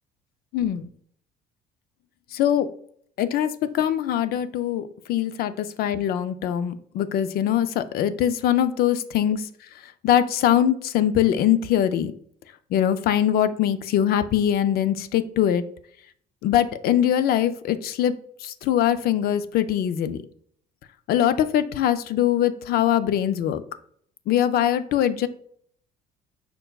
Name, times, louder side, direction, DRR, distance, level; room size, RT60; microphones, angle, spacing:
voice 1, 0.5-0.9 2.3-2.7 3.2-9.4 9.8-12.1 12.7-15.6 16.4-20.2 21.1-23.6 24.3-25.3, left 10 dB, 65° left, 12 dB, 0.4 m, -22 dB
5.3 x 4.3 x 2.3 m, 0.62 s
cardioid pair, 110°, 17 cm